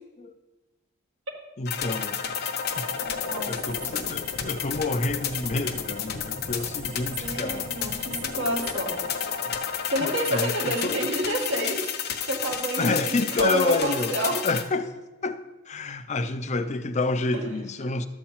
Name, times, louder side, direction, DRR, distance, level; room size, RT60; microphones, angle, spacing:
voice 1, 1.6-2.5 2.8-2.9 3.5-7.7 9.8-11.0 12.8-14.2 14.4-14.9 15.2-18.1, left 3 dB, 35° left, 0.6 m, -29 dB
sound 1, 1.7-14.6, left 7 dB, 55° left, 0.9 m, -31 dB
voice 2, 3.0-3.5 3.9-4.1 7.2-9.0 9.9-11.8 12.3-14.4 17.3-17.4, right 1 dB, 70° right, 1.8 m, -29 dB
12.0 x 4.4 x 7.3 m
head